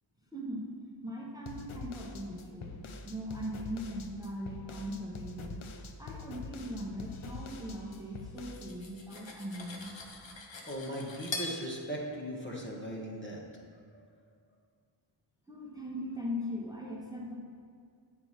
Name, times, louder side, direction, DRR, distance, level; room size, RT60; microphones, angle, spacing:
voice 1, 0.3-0.7 1.0-9.9 15.5-17.4, equal, 10° right, -3 dB, 1.1 m, -40 dB
sound 1, 1.5-8.7, left 4 dB, 85° left, 0.6 m, -45 dB
Cutlery silverware, 8.4-11.6, left 3 dB, 65° left, 0.9 m, -42 dB
voice 2, 10.7-13.4, equal, 25° left, -3 dB, 1.2 m, -38 dB
7.7 x 4.7 x 5.8 m, 2.1 s
wide cardioid pair, 70°, 48 cm